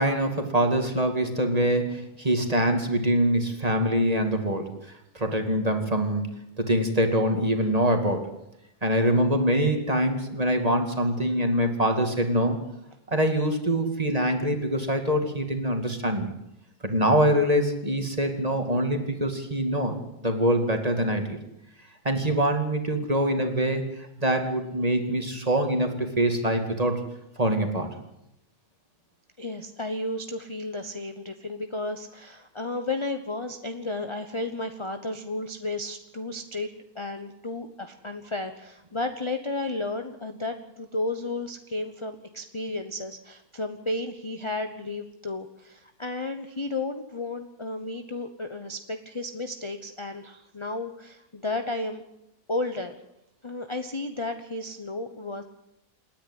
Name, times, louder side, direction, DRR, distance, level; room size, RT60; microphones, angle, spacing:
voice 1, 0.0-4.7 5.1-8.2 8.8-12.6 13.1-16.3 16.8-21.4 22.0-27.0 27.4-27.9, right 1 dB, 25° right, 5 dB, 2.4 m, -24 dB
voice 2, 29.4-36.7 36.9-52.0 52.5-53.0 53.4-55.4, left 2 dB, 20° left, 7 dB, 1.0 m, -33 dB
28.0 x 10.0 x 9.7 m, 0.84 s
omnidirectional pair, 1.7 m